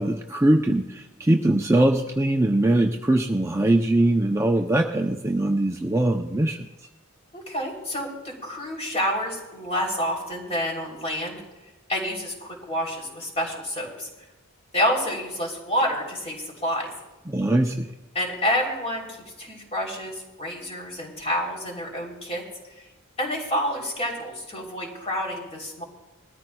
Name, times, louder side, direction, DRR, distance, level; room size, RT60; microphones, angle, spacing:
voice 1, 0.0-6.7 17.3-17.9, right 1 dB, 15° right, 3 dB, 0.5 m, -22 dB
voice 2, 7.3-11.4 11.9-14.1 14.7-16.9 18.1-22.4 22.8-22.9 23.2-25.8, equal, 30° left, -1 dB, 3.3 m, -28 dB
21.0 x 13.5 x 2.3 m, 1.1 s
head